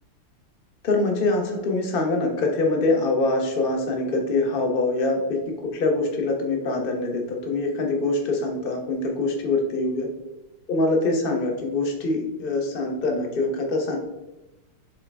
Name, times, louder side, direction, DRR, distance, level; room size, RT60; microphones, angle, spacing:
voice 1, 0.8-5.4 5.7-10.1 10.7-14.0, left 2 dB, 55° left, 2 dB, 0.6 m, -24 dB
7.4 x 3.7 x 3.4 m, 0.99 s
omnidirectional pair, 2.3 m